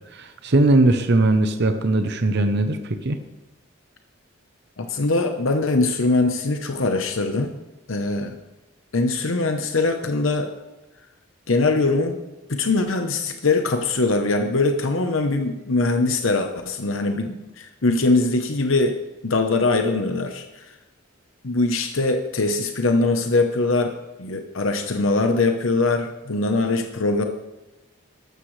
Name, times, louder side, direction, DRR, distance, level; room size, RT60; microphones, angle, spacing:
voice 1, 0.1-3.2, right 2 dB, 55° right, 8 dB, 0.8 m, -19 dB
voice 2, 4.8-7.5 7.9-8.4 8.9-10.5 11.5-12.2 12.5-20.6 21.4-27.2, left 3 dB, 75° left, 6 dB, 1.0 m, -22 dB
13.5 x 12.0 x 3.3 m, 1.1 s
head